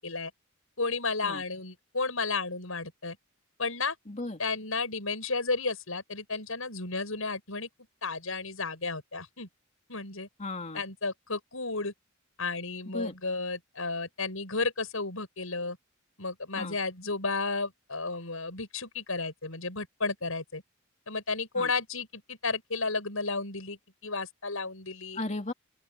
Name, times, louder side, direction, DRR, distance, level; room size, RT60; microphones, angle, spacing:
voice 1, 0.8-3.2 3.6-4.0 4.4-7.7 8.0-9.5 9.9-10.3 10.7-11.9 12.4-15.8 16.2-20.6 21.1-25.2, left 3 dB, 80° left, 6.8 m, -33 dB
voice 2, 4.1-4.4 10.4-10.8 12.9-13.1 16.5-16.8 21.6-21.7 25.1-25.5, left 2 dB, 35° left, 3.1 m, -35 dB
open air
head